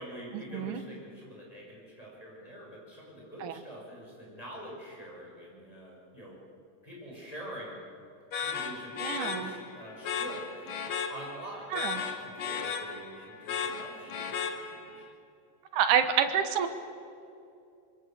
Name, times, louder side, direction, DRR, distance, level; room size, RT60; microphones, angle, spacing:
voice 1, 0.0-6.4 6.8-7.8 8.3-10.7 11.1-15.0, right 1 dB, 10° left, -3 dB, 6.5 m, -45 dB
sound 1, 8.3-15.0, left 6 dB, 65° left, 2.6 m, -36 dB
voice 2, 9.0-9.5 11.7-12.0 15.7-16.7, right 8 dB, 80° right, 8 dB, 2.7 m, -27 dB
25.5 x 23.0 x 7.6 m, 2.6 s
omnidirectional pair, 3.5 m